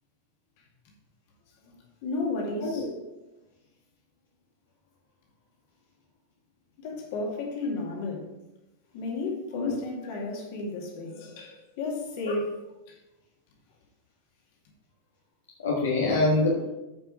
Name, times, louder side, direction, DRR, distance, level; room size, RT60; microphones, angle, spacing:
voice 1, 2.0-2.9 6.8-8.3 8.9-12.5 12.9-13.0, left 3 dB, 45° left, 0 dB, 2.3 m, -33 dB
voice 2, 15.6-16.7, left 2 dB, 65° left, -4 dB, 1.5 m, -25 dB
9.8 x 5.7 x 4.8 m, 1.0 s
figure-of-eight pair, 90°, 0 cm